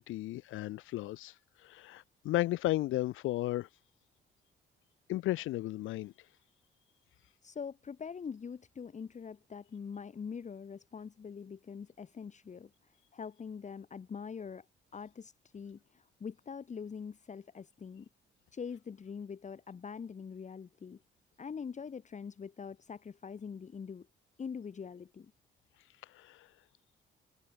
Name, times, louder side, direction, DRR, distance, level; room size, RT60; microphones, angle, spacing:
voice 1, 0.0-3.7 5.1-6.1 26.0-26.5, left 16 dB, 85° left, 0.9 m, -34 dB
voice 2, 7.4-14.6 14.9-18.1 18.5-21.0 21.4-24.1 24.4-25.3, left 6 dB, 35° left, 1.4 m, -44 dB
cardioid pair, 90°, 20 cm